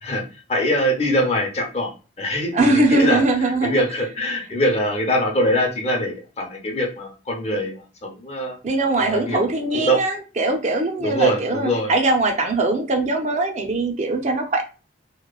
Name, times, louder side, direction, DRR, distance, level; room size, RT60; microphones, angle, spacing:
voice 1, 0.0-3.2 3.6-8.6 9.0-9.4 9.7-10.0 11.0-11.9, equal, 35° left, 1 dB, 0.7 m, -23 dB
voice 2, 2.5-3.8 7.5-7.6 8.6-14.6, right 2 dB, 40° right, 3 dB, 0.4 m, -21 dB
2.9 x 2.1 x 2.3 m, 0.34 s
head